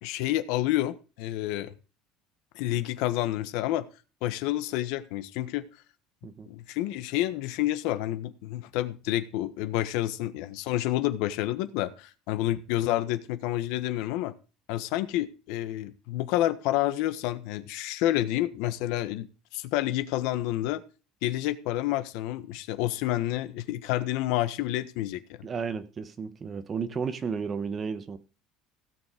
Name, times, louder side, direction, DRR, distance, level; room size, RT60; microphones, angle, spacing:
voice 1, 0.0-1.7 2.5-3.9 4.2-5.7 6.5-14.3 14.7-19.3 19.5-20.8 21.2-25.4, left 14 dB, 65° left, 1.3 m, -29 dB
voice 2, 25.4-28.2, right 6 dB, 20° right, 1.1 m, -33 dB
16.5 x 7.1 x 5.1 m
cardioid pair, 170°, 0 cm